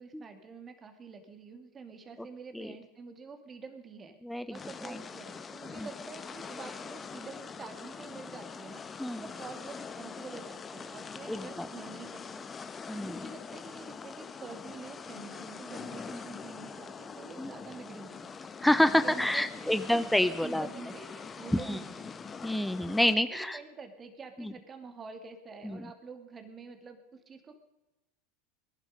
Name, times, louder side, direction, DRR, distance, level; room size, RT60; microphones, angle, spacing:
voice 1, 0.0-4.1 4.5-8.8 9.2-12.5 13.0-18.3 19.0-20.1 20.4-22.1 23.4-27.0 27.3-27.6, right 4 dB, 30° right, 7 dB, 2.9 m, -47 dB
sound 1, 4.5-23.2, left 5 dB, 25° left, 1.2 m, -43 dB
voice 2, 11.3-11.7 12.9-13.1 17.4-17.5 18.6-20.7 21.5-21.8 22.4-23.6 25.6-25.8, left 1 dB, 5° left, 11 dB, 0.7 m, -27 dB
20.5 x 11.5 x 5.1 m, 1.0 s
hypercardioid pair, 85°, 0 cm